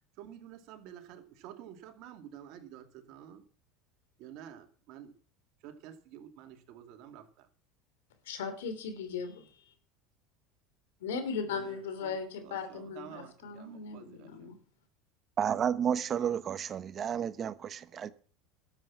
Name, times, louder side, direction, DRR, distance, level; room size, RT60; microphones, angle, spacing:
voice 1, 0.2-3.5 4.2-5.1 5.6-7.5 11.5-12.2 12.4-14.5, right 10 dB, 60° right, 2.5 m, -50 dB
voice 2, 8.2-9.5 11.0-14.6, left 5 dB, 90° left, 3.1 m, -37 dB
voice 3, 15.4-18.1, right 8 dB, 35° right, 0.9 m, -31 dB
12.5 x 8.0 x 7.2 m
supercardioid pair, 110°, 0 cm